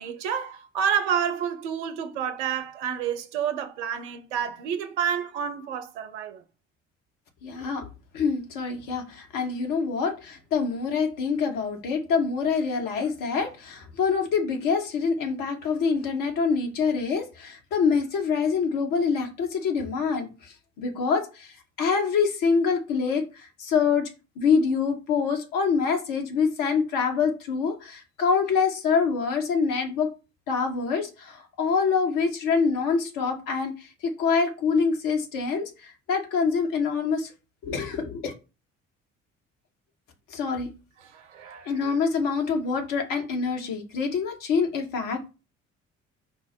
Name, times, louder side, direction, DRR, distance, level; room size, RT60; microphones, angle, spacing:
voice 1, 0.0-6.4 41.0-42.0, right 8 dB, 65° right, 0.6 m, -29 dB
voice 2, 7.4-7.8 8.1-20.3 20.8-24.0 24.4-30.1 30.5-33.9 34.2-37.3 37.6-38.3 40.3-40.7 41.7-45.3, left 5 dB, 55° left, 1.1 m, -25 dB
4.6 x 2.0 x 4.4 m
figure-of-eight pair, 45°, 38 cm